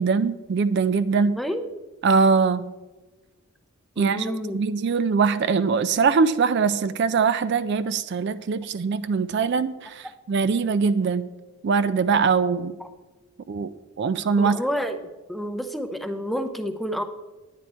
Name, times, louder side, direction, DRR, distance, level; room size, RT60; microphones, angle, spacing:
voice 1, 0.0-1.4 2.0-2.7 4.0-11.3 11.6-12.7 13.5-13.7 14.0-14.6, right 5 dB, 50° right, 13 dB, 0.3 m, -22 dB
voice 2, 4.0-4.6 14.4-15.0 15.3-17.0, equal, ahead, 7 dB, 0.5 m, -28 dB
9.9 x 9.5 x 4.3 m, 1.2 s
head